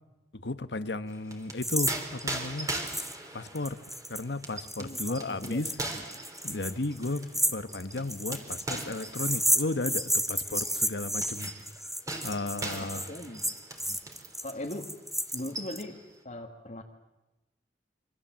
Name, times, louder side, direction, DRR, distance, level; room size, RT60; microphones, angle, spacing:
voice 1, 0.3-2.7 3.3-3.8 4.1-5.7 6.4-11.5 11.8-11.9 12.2-13.1, left 2 dB, 75° left, 12 dB, 1.2 m, -34 dB
sound 1, 1.1-14.4 14.7-14.9 15.2-16.0, right 2 dB, 20° right, 3.1 m, -40 dB
sound 2, 1.6-2.2 2.9-3.2 3.5-15.8, equal, ahead, 1.1 m, -31 dB
voice 2, 4.8-5.6 12.6-13.5 13.9-14.0 14.4-14.9 15.3-16.0 16.2-16.8, left 1 dB, 45° left, 0 dB, 1.8 m, -39 dB
26.0 x 25.5 x 7.5 m, 1.0 s
head